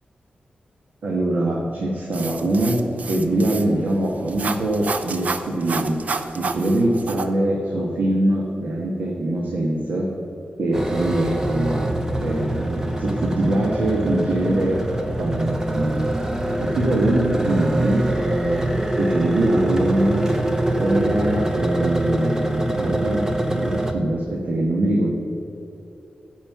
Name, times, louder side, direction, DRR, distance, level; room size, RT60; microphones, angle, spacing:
voice 1, 1.0-2.8 3.1-6.0 6.3-10.1 10.6-11.9 12.2-14.8 15.2-16.1 16.6-18.7 19.0-20.3 20.8-23.2 23.5-25.1, right 1 dB, 75° right, -2 dB, 1.4 m, -23 dB
sound 1, 2.1-7.3, right 4 dB, 55° right, 0.6 m, -30 dB
sound 2, 10.7-23.9, right 1 dB, 15° right, 0.8 m, -24 dB
15.0 x 5.5 x 5.8 m, 2.9 s
wide cardioid pair, 145°, 3 cm